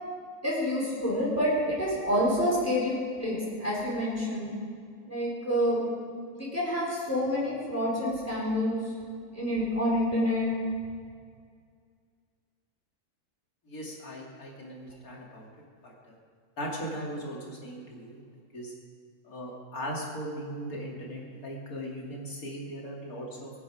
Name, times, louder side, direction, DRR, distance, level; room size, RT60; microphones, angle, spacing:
voice 1, 0.4-4.5 5.1-5.8 6.3-8.8 9.3-10.5, equal, 10° left, -6 dB, 4.4 m, -28 dB
voice 2, 13.7-15.5 15.8-16.2 16.6-18.2 18.5-18.7 19.2-23.5, equal, 65° left, -2 dB, 3.2 m, -38 dB
23.5 x 9.4 x 4.9 m, 2.1 s
omnidirectional pair, 1.6 m